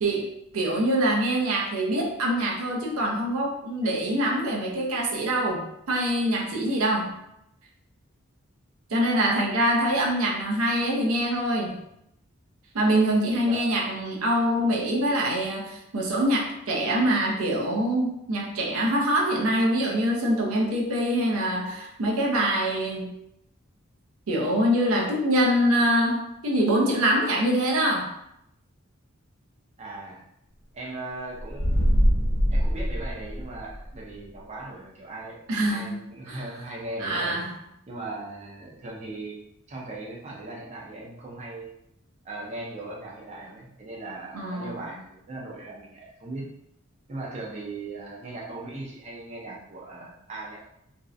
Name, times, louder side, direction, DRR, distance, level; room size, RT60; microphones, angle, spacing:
voice 1, 0.0-7.1 8.9-11.8 12.7-23.1 24.3-28.1 35.5-36.0 36.3-36.4 37.0-37.5 44.3-44.8, right 1 dB, 80° right, -1 dB, 0.5 m, -24 dB
voice 2, 29.8-30.2 30.7-32.0 32.5-35.4 35.7-37.4 37.9-39.4 39.7-41.7 42.2-46.4 47.1-50.6, right 2 dB, 30° right, -4 dB, 0.5 m, -38 dB
sound 1, 31.4-33.9, equal, 85° left, 0.6 m, -23 dB
2.6 x 2.0 x 2.4 m, 0.78 s
head